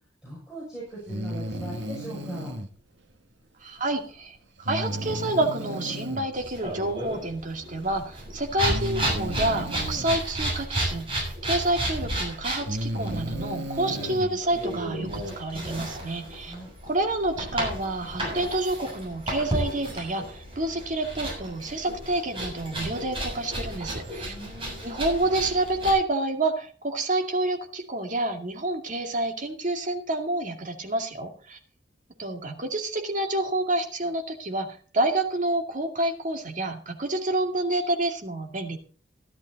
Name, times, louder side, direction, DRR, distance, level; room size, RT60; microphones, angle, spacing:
voice 1, 0.2-2.6 16.4-16.7 24.2-24.8, right 1 dB, 5° right, -7 dB, 6.3 m, -39 dB
Breathing, 1.1-2.7 4.6-6.3 7.6-7.7 8.6-10.2 11.7-11.8 12.5-14.3, equal, 75° right, 1.4 m, -33 dB
voice 2, 3.6-4.4 4.7-16.5 16.9-24.3 24.8-31.6 32.2-38.8, right 2 dB, 45° right, 3 dB, 2.2 m, -28 dB
sound 1, 6.3-25.9, right 1 dB, 30° right, 7.5 m, -33 dB
14.0 x 12.0 x 4.1 m, 0.41 s
head